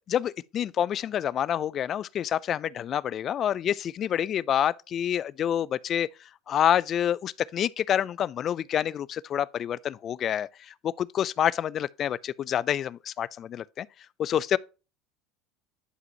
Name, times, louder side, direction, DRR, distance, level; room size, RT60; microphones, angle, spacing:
voice 1, 0.1-6.1 6.5-13.9 14.2-14.6, left 10 dB, 40° left, 0.3 m, -27 dB
11.0 x 5.0 x 2.8 m
supercardioid pair, 105°, 0 cm